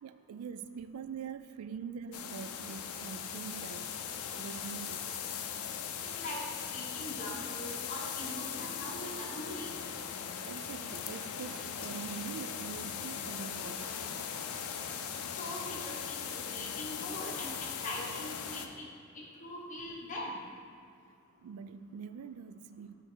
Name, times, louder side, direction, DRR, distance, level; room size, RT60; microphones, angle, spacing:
voice 1, 0.0-4.0 4.4-5.2 10.5-14.5 21.4-22.9, right 6 dB, 80° right, 12 dB, 0.3 m, -44 dB
sound 1, 2.1-18.7, left 7 dB, 80° left, 0.5 m, -39 dB
voice 2, 6.1-9.7 15.4-18.9 19.1-20.4, left 1 dB, 35° left, -4 dB, 1.2 m, -42 dB
7.6 x 3.3 x 6.2 m, 2.2 s
head